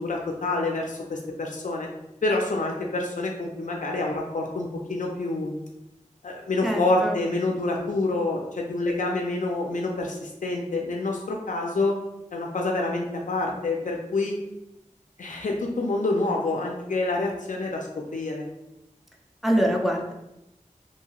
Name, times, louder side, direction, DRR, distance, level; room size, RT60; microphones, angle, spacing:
voice 1, 0.0-1.9 2.2-5.5 6.2-12.0 12.3-14.4 15.2-18.5, left 2 dB, 75° left, 0 dB, 0.4 m, -27 dB
voice 2, 6.6-7.2 19.4-20.1, equal, ahead, 0 dB, 0.4 m, -24 dB
2.8 x 2.7 x 2.3 m, 0.89 s
wide cardioid pair, 60°, 13 cm